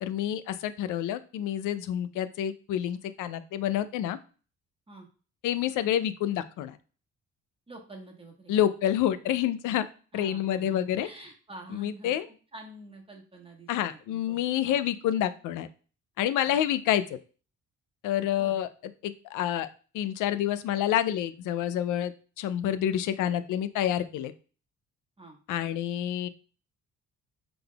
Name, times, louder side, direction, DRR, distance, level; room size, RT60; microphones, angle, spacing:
voice 1, 0.0-4.2 5.4-6.8 8.5-9.8 10.1-11.1 11.7-12.3 13.7-15.7 16.2-17.2 18.0-18.7 19.0-19.7 19.9-24.3 25.5-26.3, left 11 dB, 85° left, 13 dB, 0.5 m, -28 dB
voice 2, 7.7-8.7 10.1-14.9 16.5-16.6 18.4-18.5 25.2-25.4, right 2 dB, 20° right, 1 dB, 1.1 m, -48 dB
5.2 x 3.9 x 2.3 m, 0.37 s
cardioid pair, 90°, 30 cm